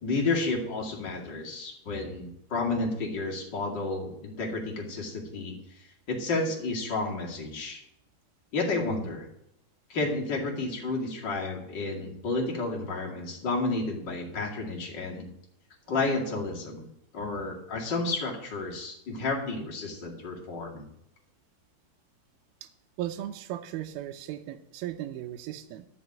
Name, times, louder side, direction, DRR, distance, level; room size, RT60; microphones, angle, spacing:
voice 1, 0.0-5.6 6.1-7.8 8.5-9.3 9.9-15.3 15.9-16.8 17.1-20.9, left 3 dB, 35° left, -1 dB, 2.4 m, -31 dB
voice 2, 23.0-25.9, right 12 dB, 80° right, 6 dB, 2.5 m, -36 dB
11.0 x 6.1 x 8.7 m, 0.77 s
omnidirectional pair, 4.4 m